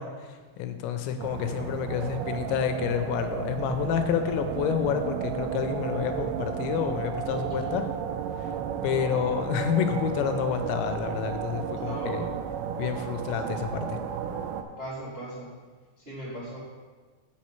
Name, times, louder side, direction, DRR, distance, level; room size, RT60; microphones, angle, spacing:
voice 1, 0.0-7.9 8.4-8.5 8.8-12.2 12.8-13.9, left 8 dB, 90° left, 7 dB, 2.9 m, -29 dB
sound 1, 1.2-14.6, right 8 dB, 90° right, 2.8 m, -33 dB
voice 2, 7.5-7.9 11.8-12.4 13.3-13.7 14.8-15.6 16.0-16.6, right 1 dB, 40° right, -9 dB, 0.8 m, -39 dB
7.3 x 6.9 x 4.4 m, 1.4 s
omnidirectional pair, 5.0 m